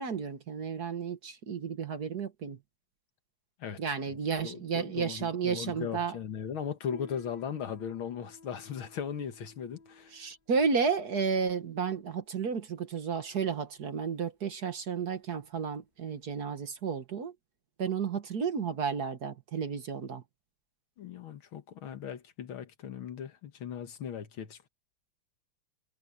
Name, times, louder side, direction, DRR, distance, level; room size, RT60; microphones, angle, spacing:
voice 1, 0.0-2.6 3.8-6.2 10.1-17.3 17.8-20.2, right 6 dB, 50° right, 1.8 m, -32 dB
voice 2, 4.4-10.1 21.0-24.7, left 8 dB, 75° left, 2.2 m, -38 dB
Piano, 6.9-16.8, left 3 dB, 25° left, 5.0 m, -57 dB
omnidirectional pair, 2.3 m